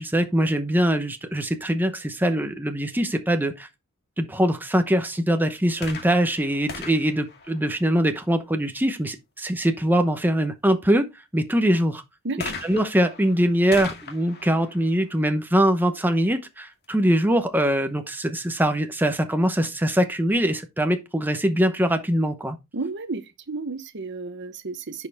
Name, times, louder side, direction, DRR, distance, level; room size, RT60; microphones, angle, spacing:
voice 1, 0.0-3.7 4.2-11.1 11.3-12.0 12.7-22.6, equal, 10° right, 0.9 m, -22 dB
sound 1, 5.8-8.3 12.4-16.0 16.8-16.9, left 4 dB, 50° left, 2.1 m, -39 dB
voice 2, 12.2-12.6 22.7-25.1, right 3 dB, 55° right, 0.9 m, -32 dB
10.5 x 5.4 x 3.5 m
head